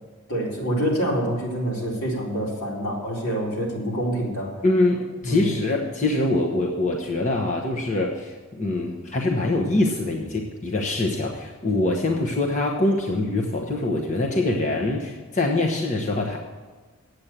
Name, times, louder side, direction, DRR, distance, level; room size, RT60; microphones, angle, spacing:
voice 1, 0.3-4.5 5.2-5.7, equal, 75° left, -4 dB, 4.2 m, -26 dB
voice 2, 4.6-16.4, left 2 dB, 35° left, 0 dB, 1.1 m, -24 dB
9.5 x 8.0 x 8.7 m, 1.4 s
head